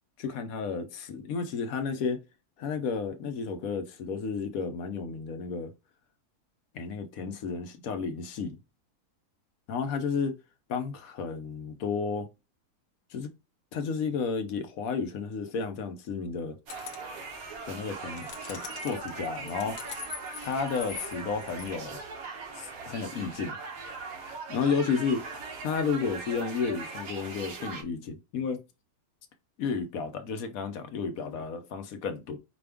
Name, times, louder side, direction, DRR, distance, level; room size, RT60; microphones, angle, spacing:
voice 1, 0.2-2.2 2.6-5.7 6.7-8.6 9.7-10.4 10.7-12.3 13.1-13.3 13.7-16.6 17.7-19.8 20.4-22.0 22.6-23.5 24.5-28.6 29.6-32.4, left 5 dB, 70° left, 1.1 m, -32 dB
sound 1, 16.7-17.2 17.9-21.7, left 9 dB, 85° left, 1.2 m, -43 dB
sound 2, 16.7-27.8, right 4 dB, 65° right, 1.4 m, -40 dB
5.1 x 2.4 x 3.4 m
omnidirectional pair, 1.7 m